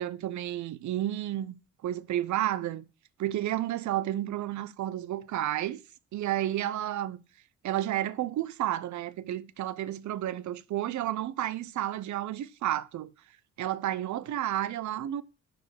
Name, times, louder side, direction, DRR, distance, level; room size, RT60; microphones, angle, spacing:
voice 1, 0.0-1.5 1.8-2.8 3.2-5.8 6.1-7.2 7.6-13.1 13.6-15.2, right 13 dB, 70° right, 0.8 m, -31 dB
10.5 x 4.9 x 6.3 m
cardioid pair, 90°, 30 cm